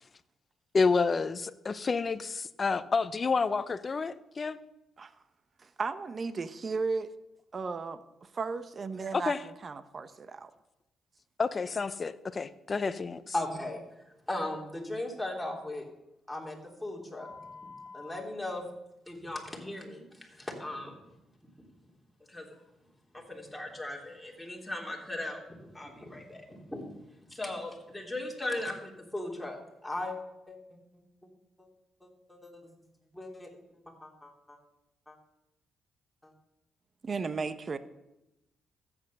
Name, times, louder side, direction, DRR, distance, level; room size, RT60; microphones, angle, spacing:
voice 1, 0.7-4.6 9.1-9.4 11.4-13.2, left 4 dB, 35° left, 0.7 m, -29 dB
voice 2, 5.6-7.1 7.5-10.5 37.0-37.8, right 4 dB, 40° right, 0.8 m, -35 dB
voice 3, 13.3-13.8 14.3-15.9 16.3-18.6 19.1-21.0 21.6-21.7 22.3-22.6 23.1-26.8 27.3-30.2 30.5-30.8 32.0-32.7 33.1-33.5 33.8-34.6 35.1-35.2 36.2-36.3, left 1 dB, 5° left, 3.2 m, -38 dB
13.0 x 8.8 x 6.5 m
cardioid pair, 90°, 0 cm